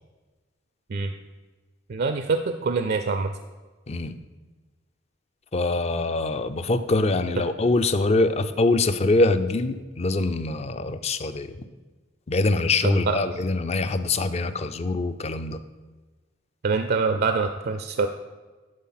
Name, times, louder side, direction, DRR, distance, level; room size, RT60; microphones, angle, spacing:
voice 1, 1.9-3.3 12.8-13.2 16.6-18.1, right 4 dB, 50° right, 8 dB, 0.4 m, -25 dB
voice 2, 3.9-4.2 5.5-11.5 12.3-15.6, left 2 dB, 35° left, 12 dB, 0.4 m, -24 dB
11.0 x 4.2 x 5.8 m, 1.3 s
head